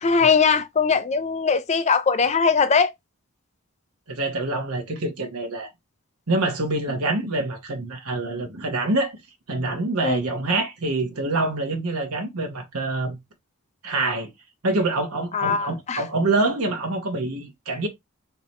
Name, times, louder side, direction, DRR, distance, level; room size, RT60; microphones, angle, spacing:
voice 1, 0.0-2.9 10.0-10.2 15.3-16.0, left 5 dB, 30° left, 0.4 m, -20 dB
voice 2, 4.1-5.7 6.3-9.1 9.5-13.2 13.8-14.3 14.6-17.9, right 2 dB, 90° right, 1.3 m, -25 dB
3.3 x 2.9 x 4.3 m
head